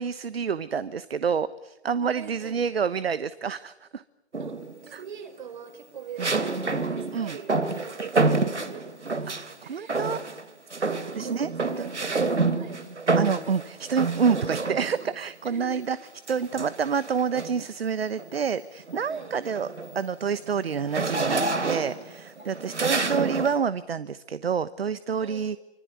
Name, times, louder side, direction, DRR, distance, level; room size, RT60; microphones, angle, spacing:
voice 1, 0.0-4.0 4.9-5.0 6.2-6.3 7.1-7.4 9.3-10.2 11.1-11.5 11.8-11.9 13.1-16.0 16.3-19.7 19.9-25.6, right 6 dB, 60° right, 16 dB, 1.2 m, -28 dB
voice 2, 2.0-2.7 4.4-8.9 9.2-10.4 10.9-12.9 15.4-15.9 19.0-19.4 22.3-22.9 25.1-25.5, right 6 dB, 45° right, 7 dB, 5.3 m, -43 dB
sound 1, 4.3-4.9 6.2-9.5 9.9-10.4 10.7-15.1 16.3-17.7 18.2-18.4 18.8-23.6, right 3 dB, 85° right, 3.1 m, -28 dB
26.0 x 25.0 x 8.4 m, 0.98 s
figure-of-eight pair, 155°, 34 cm